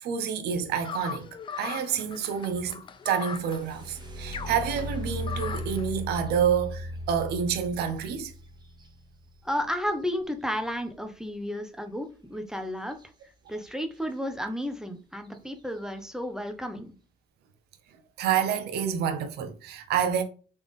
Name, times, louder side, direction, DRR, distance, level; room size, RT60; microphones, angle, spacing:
voice 1, 0.0-8.3 18.2-20.2, right 7 dB, 75° right, 0.8 m, -28 dB
sound 1, 0.8-5.9, left 7 dB, 30° left, 0.4 m, -39 dB
sound 2, 3.0-10.8 12.9-13.0 13.5-14.0 14.6-14.7 15.2-15.6, equal, 25° right, 1.0 m, -38 dB
voice 2, 9.4-13.0 13.5-16.9, equal, 5° right, 0.7 m, -32 dB
4.0 x 3.3 x 3.6 m
cardioid pair, 110°, 17 cm